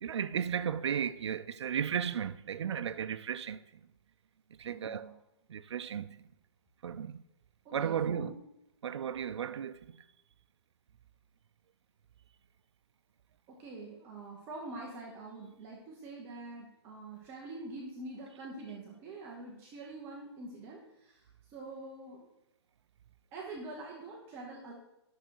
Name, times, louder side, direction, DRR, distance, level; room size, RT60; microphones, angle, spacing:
voice 1, 0.0-3.6 4.6-5.1 5.5-6.2 6.8-7.2 7.7-8.3 8.8-10.0, right 8 dB, 80° right, 0.6 m, -34 dB
voice 2, 4.6-5.1 7.6-8.3 13.5-21.2 21.5-22.3 23.3-24.7, right 2 dB, 15° right, 0.9 m, -45 dB
10.5 x 6.5 x 4.6 m
hypercardioid pair, 175°, 14 cm